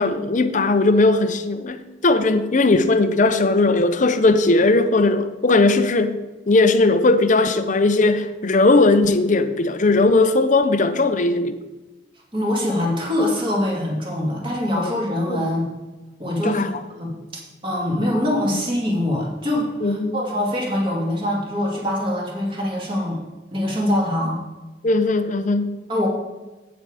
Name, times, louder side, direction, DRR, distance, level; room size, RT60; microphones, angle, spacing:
voice 1, 0.0-6.2 6.5-11.6 15.3-15.5 16.4-16.8 19.8-20.2 24.8-25.8, left 2 dB, 40° left, 10 dB, 0.6 m, -18 dB
voice 2, 12.3-15.7 16.2-16.6 16.9-23.2 23.5-24.4 25.9-26.1, left 1 dB, 25° right, -3 dB, 2.4 m, -23 dB
8.9 x 7.8 x 4.9 m, 1.2 s
head